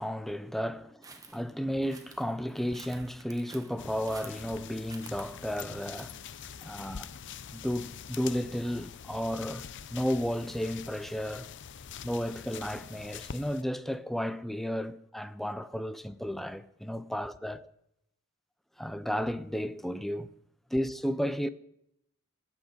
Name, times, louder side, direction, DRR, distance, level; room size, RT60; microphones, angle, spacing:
voice 1, 0.0-6.2 6.6-7.1 7.5-9.7 9.9-11.5 12.0-17.7 18.8-20.3 20.7-21.5, equal, ahead, 0.5 m, -33 dB
sound 1, 1.0-6.3, right 4 dB, 15° right, 1.2 m, -51 dB
sound 2, 3.8-13.6, left 7 dB, 60° left, 0.6 m, -45 dB
16.5 x 6.2 x 8.7 m
head